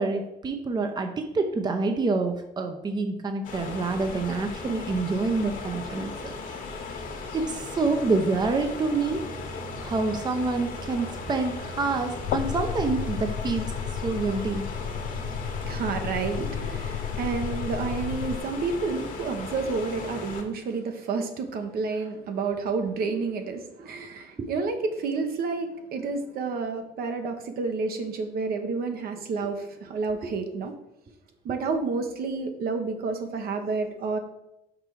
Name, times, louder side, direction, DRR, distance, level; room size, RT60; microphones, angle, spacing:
voice 1, 0.0-6.3 7.3-9.2 9.8-14.7 23.8-23.9 24.4-24.5, right 3 dB, 25° right, 6 dB, 0.7 m, -27 dB
sound 1, 3.4-20.4, left 4 dB, 55° left, 1.4 m, -37 dB
sound 2, 9.0-18.3, right 5 dB, 90° right, 1.2 m, -44 dB
sound 3, 12.2-18.4, left 9 dB, 85° left, 0.4 m, -33 dB
voice 2, 15.6-30.7 31.4-34.2, right 4 dB, 65° right, 5 dB, 1.0 m, -30 dB
6.0 x 4.4 x 4.7 m, 0.88 s
cardioid pair, 110°, 17 cm